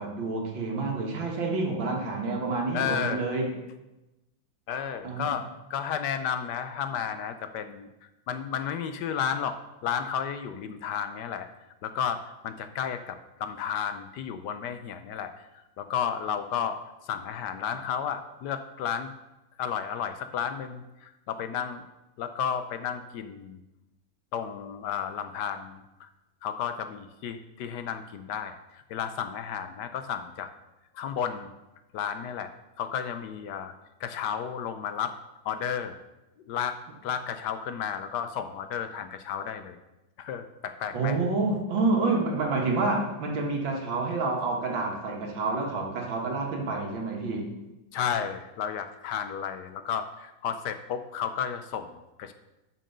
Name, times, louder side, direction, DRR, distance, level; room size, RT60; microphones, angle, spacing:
voice 1, 0.0-3.5 5.0-5.3 40.9-47.6, right 3 dB, 85° right, 0 dB, 2.3 m, -28 dB
voice 2, 2.7-3.4 4.7-7.9 8.3-9.6 9.8-11.5 11.8-15.3 15.8-16.8 17.0-19.1 19.6-21.8 22.2-23.6 24.3-26.1 26.4-30.5 30.9-31.5 31.9-32.5 32.8-33.7 34.0-35.1 35.4-36.0 36.5-39.8 40.2-41.2 47.9-52.3, left 8 dB, 70° left, 9 dB, 1.1 m, -32 dB
6.9 x 6.0 x 6.6 m, 0.98 s
omnidirectional pair, 2.0 m